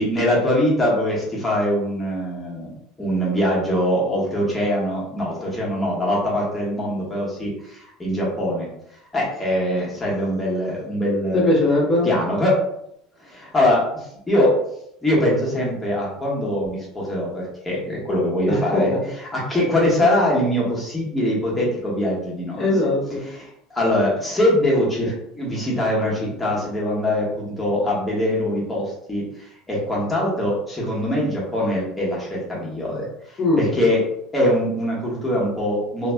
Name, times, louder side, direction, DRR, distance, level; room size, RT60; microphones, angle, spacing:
voice 1, 0.0-2.7 3.0-8.7 9.1-11.6 12.0-12.6 13.2-14.5 15.0-18.9 19.3-22.6 23.3-23.4 23.7-29.2 29.7-34.0 34.3-36.1, left 1 dB, 15° left, -5 dB, 1.3 m, -22 dB
voice 2, 11.3-12.1 18.5-19.0 22.6-23.3 33.4-33.7, left 2 dB, 30° left, -2 dB, 1.0 m, -20 dB
3.0 x 2.7 x 2.2 m, 0.75 s
supercardioid pair, 105°, 0 cm